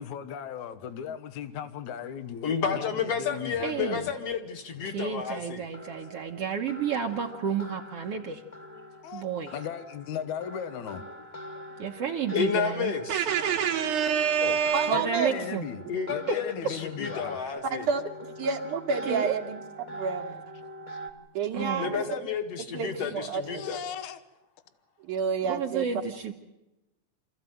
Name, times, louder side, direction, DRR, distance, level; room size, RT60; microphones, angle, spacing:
voice 1, 0.0-4.1 9.0-9.2 9.5-11.0 14.4-14.6 14.9-15.8 16.1-17.4 20.9-21.0 23.4-24.2, left 8 dB, 75° left, 2.5 m, -37 dB
voice 2, 2.4-5.6 8.7-8.8 11.5-11.6 12.3-13.2 15.9-17.9 21.8-23.8, left 6 dB, 55° left, 2.9 m, -31 dB
voice 3, 3.6-4.0 4.8-8.4 9.1-9.5 11.8-13.0 14.9-15.7 16.3-16.4 19.0-19.3 21.5-22.1 25.5-26.3, right 7 dB, 60° right, 1.9 m, -31 dB
sound 1, 4.6-21.1, right 1 dB, 15° left, 1.5 m, -44 dB
voice 4, 13.1-15.3 17.7-18.1 18.4-19.6 19.9-20.4 21.3-22.0 22.7-23.6 25.0-25.9, right 6 dB, 75° right, 3.2 m, -28 dB
27.0 x 14.5 x 9.3 m
omnidirectional pair, 3.5 m